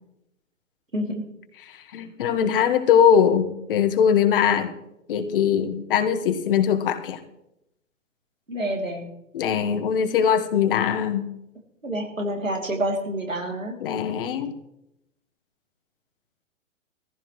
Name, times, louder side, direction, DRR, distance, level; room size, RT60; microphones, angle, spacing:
voice 1, 1.9-4.7 5.1-7.2 9.3-11.3 13.8-14.6, left 8 dB, 45° left, 9 dB, 1.6 m, -21 dB
voice 2, 8.5-9.1 11.8-13.8, right 1 dB, 90° right, 1 dB, 3.0 m, -28 dB
19.0 x 15.0 x 3.2 m, 0.82 s
figure-of-eight pair, 115°, 38 cm